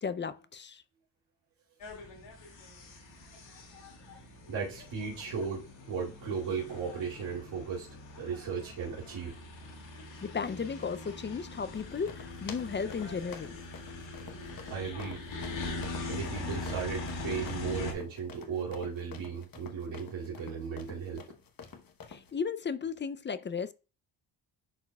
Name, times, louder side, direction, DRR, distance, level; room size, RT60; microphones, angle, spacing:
voice 1, 0.0-0.8 10.2-13.6 22.1-23.7, left 6 dB, 25° left, 0.4 m, -35 dB
sound 1, 1.8-17.9, left 2 dB, 80° left, 2.3 m, -42 dB
voice 2, 4.5-7.9 8.2-9.4 14.7-15.2 16.0-21.2, right 6 dB, 90° right, 2.5 m, -36 dB
sound 2, 11.7-22.3, left 6 dB, 50° left, 1.0 m, -49 dB
11.0 x 4.4 x 2.3 m
cardioid pair, 85°, 44 cm